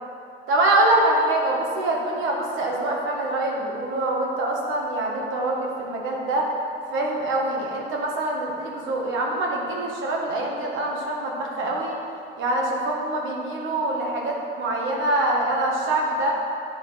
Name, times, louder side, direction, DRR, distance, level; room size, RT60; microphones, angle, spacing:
voice 1, 0.5-6.5 6.9-12.0 12.4-16.3, right 2 dB, 80° right, -2 dB, 1.5 m, -24 dB
10.0 x 4.8 x 4.2 m, 2.6 s
cardioid pair, 90°, 20 cm